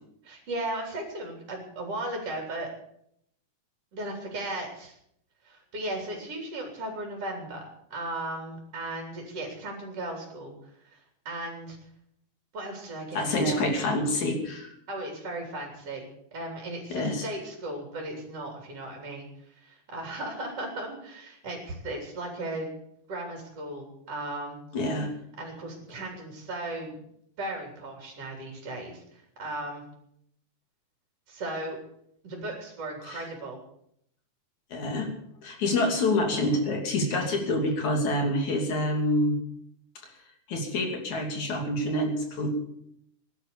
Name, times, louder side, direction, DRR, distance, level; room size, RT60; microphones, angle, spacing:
voice 1, 0.2-2.7 3.9-4.9 5.4-11.0 11.3-11.8 12.5-13.6 14.9-22.7 23.1-24.6 25.4-27.0 27.4-29.9 31.3-31.8 32.2-33.6, right 1 dB, 45° right, 1 dB, 4.3 m, -36 dB
voice 2, 13.1-14.8 16.9-17.2 24.7-25.1 33.1-33.3 34.7-35.1 35.4-39.4 40.5-42.5, left 1 dB, 60° left, 3 dB, 4.2 m, -27 dB
16.5 x 12.0 x 7.0 m, 0.73 s
omnidirectional pair, 3.8 m